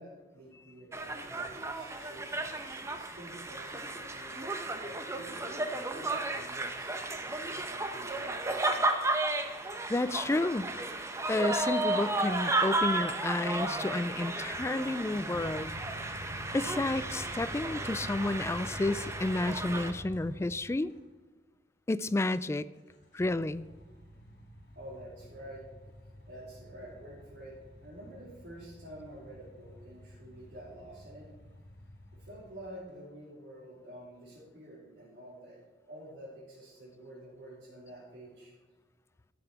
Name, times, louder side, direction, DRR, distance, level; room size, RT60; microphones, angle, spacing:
voice 1, 0.0-4.5 4.8-8.7 24.7-25.6 26.3-31.3 32.1-38.5, right 1 dB, 75° right, -9 dB, 3.2 m, -49 dB
sound 1, 0.9-19.9, right 2 dB, 15° right, 0.8 m, -34 dB
voice 2, 9.9-10.7 11.3-15.7 16.5-20.9 21.9-22.7 23.1-23.7, left 2 dB, 15° left, 15 dB, 0.3 m, -31 dB
sound 2, 14.6-21.0 22.8-32.9, equal, 75° left, 3.1 m, -48 dB
12.5 x 7.9 x 4.5 m, 1.3 s
head